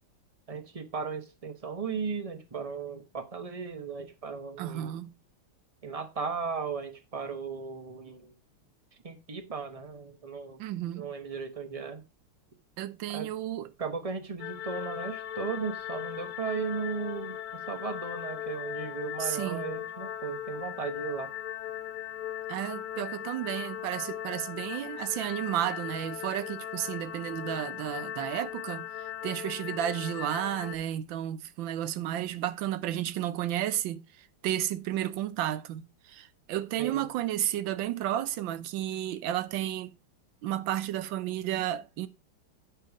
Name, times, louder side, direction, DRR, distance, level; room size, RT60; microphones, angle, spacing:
voice 1, 0.5-4.9 5.8-8.3 9.0-10.6 11.0-12.0 13.1-13.3 13.8-21.3 36.8-37.1, right 5 dB, 40° right, 0.4 m, -36 dB
voice 2, 4.6-5.1 10.6-11.1 12.8-13.7 19.2-19.6 22.5-28.9 29.2-34.0 34.4-39.9 40.4-42.1, right 12 dB, 70° right, 1.4 m, -32 dB
sound 1, 14.4-30.8, left 11 dB, 85° left, 1.8 m, -38 dB
8.8 x 5.5 x 4.8 m
omnidirectional pair, 2.3 m